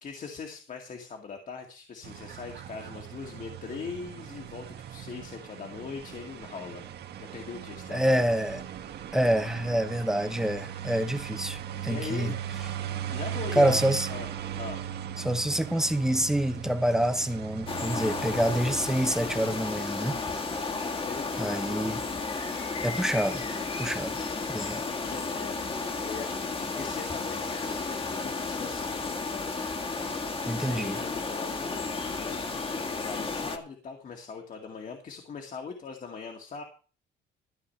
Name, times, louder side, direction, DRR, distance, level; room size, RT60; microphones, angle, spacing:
voice 1, 0.0-6.8 7.2-8.2 11.8-12.4 13.1-13.8 14.1-14.3 14.6-14.8 21.0-21.7 22.5-22.8 23.9-29.5 30.6-32.4 32.8-36.6, left 5 dB, 45° left, 2.1 m, -41 dB
sound 1, 2.0-19.6, right 10 dB, 60° right, 1.7 m, -39 dB
voice 2, 7.9-8.6 9.1-12.3 13.5-14.1 15.2-20.2 21.4-22.0 22.8-23.4 23.8-24.2 24.5-24.8 30.5-31.0, right 1 dB, 5° right, 1.0 m, -27 dB
sound 2, 17.7-33.6, left 4 dB, 30° left, 2.0 m, -33 dB
14.0 x 4.9 x 8.5 m
cardioid pair, 140°, 19 cm